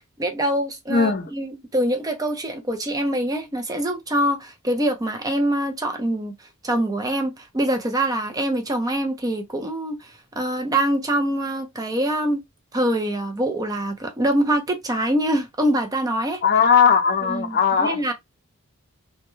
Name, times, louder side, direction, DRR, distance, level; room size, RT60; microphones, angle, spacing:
voice 1, 0.2-6.3 6.6-12.4 12.7-16.4 17.3-18.1, right 1 dB, 15° right, 0.5 m, -24 dB
voice 2, 0.9-1.3 16.4-18.1, left 6 dB, 45° left, 0.5 m, -18 dB
2.2 x 2.1 x 3.0 m
head